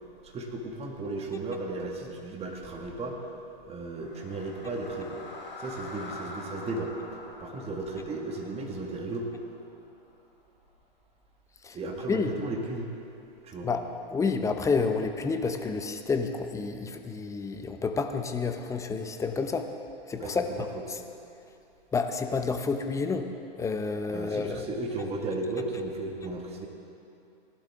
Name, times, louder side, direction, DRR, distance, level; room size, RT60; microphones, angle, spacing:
voice 1, 0.2-3.2 3.6-5.2 5.6-7.0 7.4-9.3 11.7-12.9 13.4-13.7 20.2-20.7 24.1-26.7, right 2 dB, 20° right, 1 dB, 1.7 m, -35 dB
sound 1, 3.8-10.0, left 2 dB, 85° left, 3.1 m, -45 dB
voice 2, 14.1-19.7 20.1-21.0 21.9-23.3 23.6-24.7, left 4 dB, 10° left, 6 dB, 0.6 m, -29 dB
18.0 x 11.0 x 3.6 m, 2.8 s
hypercardioid pair, 110°, 30 cm